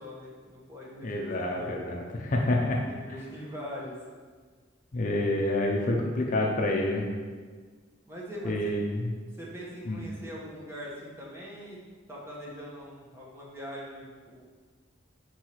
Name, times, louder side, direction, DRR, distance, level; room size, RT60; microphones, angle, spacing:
voice 1, 0.0-1.7 2.9-3.9 8.1-8.7 9.4-11.8 12.1-14.4, equal, 15° right, -5 dB, 1.0 m, -42 dB
voice 2, 1.0-2.8 4.9-7.1 8.4-9.1 9.9-10.0, left 1 dB, 40° left, -1 dB, 0.6 m, -28 dB
4.7 x 4.5 x 4.5 m, 1.5 s
head